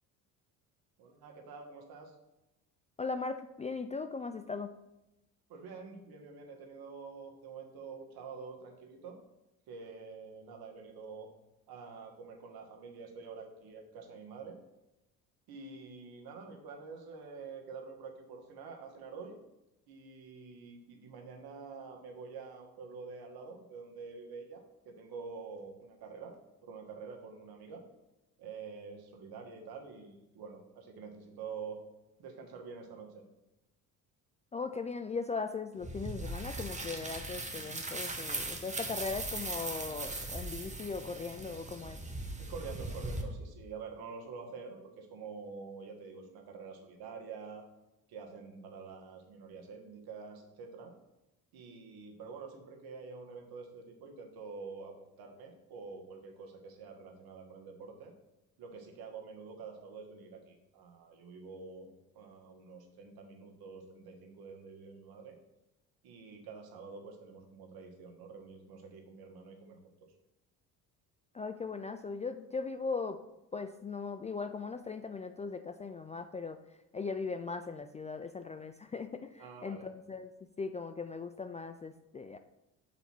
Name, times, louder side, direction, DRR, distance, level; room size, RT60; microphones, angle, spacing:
voice 1, 1.0-2.1 5.5-9.2 9.7-11.3 11.7-14.6 15.5-19.4 19.9-26.3 26.6-27.8 28.4-31.9 32.2-33.2 42.4-47.6 48.1-50.9 51.5-58.1 58.6-61.9 62.1-65.4 66.0-70.1 79.4-79.9, right 5 dB, 65° right, 3 dB, 1.5 m, -47 dB
voice 2, 3.0-4.8 34.5-42.0 71.3-73.2 73.5-76.6 76.9-80.3 80.6-82.4, left 4 dB, 20° left, 8 dB, 0.3 m, -39 dB
sound 1, 35.8-43.2, right 2 dB, 15° right, 1.3 m, -39 dB
5.7 x 4.2 x 6.0 m, 0.93 s
supercardioid pair, 70°, 40 cm